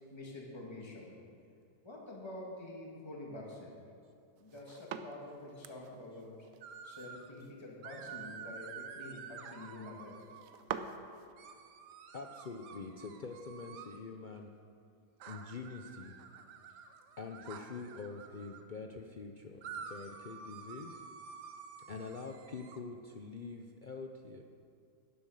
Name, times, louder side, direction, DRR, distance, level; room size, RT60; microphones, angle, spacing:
voice 1, 0.1-1.1 1.8-3.8 4.4-6.4 6.8-10.2, left 2 dB, 15° left, -3 dB, 2.0 m, -47 dB
sound 1, 4.4-11.3, right 7 dB, 65° right, 1.0 m, -47 dB
sound 2, 6.6-7.3 7.8-10.6 11.4-14.0 15.2-18.6 19.6-22.8, right 6 dB, 85° right, 1.4 m, -49 dB
voice 2, 12.1-14.5 15.3-16.1 17.2-21.0 21.9-24.4, left 4 dB, 70° left, 3 dB, 0.4 m, -45 dB
11.0 x 10.5 x 6.5 m, 2.4 s
omnidirectional pair, 1.7 m